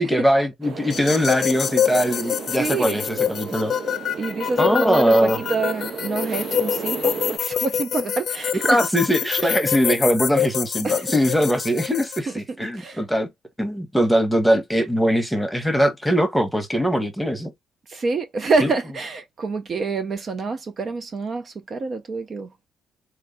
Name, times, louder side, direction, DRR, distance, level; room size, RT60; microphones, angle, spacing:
voice 1, 0.0-3.7 4.6-5.4 8.5-13.3 13.6-17.5 18.6-18.7, equal, ahead, 1.1 m, -21 dB
sound 1, 0.6-7.4, right 5 dB, 70° right, 1.1 m, -34 dB
sound 2, 0.9-12.2, left 9 dB, 60° left, 0.6 m, -26 dB
voice 2, 2.6-3.0 4.2-8.8 9.4-9.5 10.8-11.1 12.3-12.4 12.7-13.0 17.9-22.5, right 4 dB, 45° right, 0.6 m, -27 dB
3.6 x 3.2 x 2.6 m
cardioid pair, 90°, 0 cm